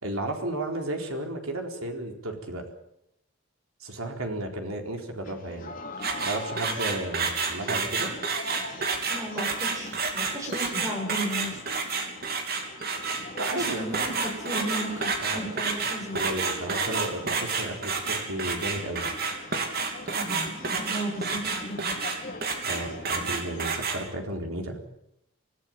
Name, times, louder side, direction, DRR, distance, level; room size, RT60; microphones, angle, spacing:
voice 1, 0.0-2.6 3.8-5.7 6.2-8.1 13.4-14.0 15.2-15.4 16.1-19.1 22.6-24.8, right 1 dB, 85° right, 3 dB, 4.2 m, -33 dB
sound 1, 5.2-23.8, left 2 dB, 40° left, 2.9 m, -43 dB
sound 2, 6.0-24.0, right 4 dB, 45° right, 3.3 m, -29 dB
voice 2, 9.1-11.6 13.5-16.2 20.0-21.9, right 1 dB, 15° right, 1 dB, 6.7 m, -35 dB
24.5 x 15.0 x 9.1 m, 0.81 s
head